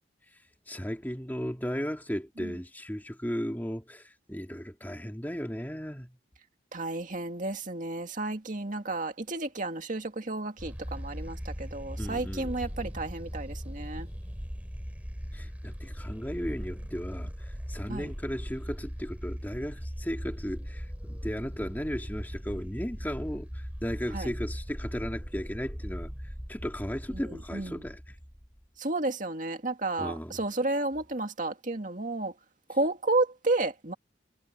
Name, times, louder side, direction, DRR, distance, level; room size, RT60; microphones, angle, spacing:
voice 1, 0.7-6.2 12.0-12.5 15.3-26.1 26.5-28.1 30.0-30.4, equal, 10° left, 2.6 m, -35 dB
voice 2, 6.7-14.1 17.9-18.1 24.1-24.3 27.3-27.8 28.8-32.3 32.7-33.9, right 2 dB, 45° right, 2.1 m, -32 dB
sound 1, 10.6-28.6, equal, 10° right, 7.6 m, -39 dB
head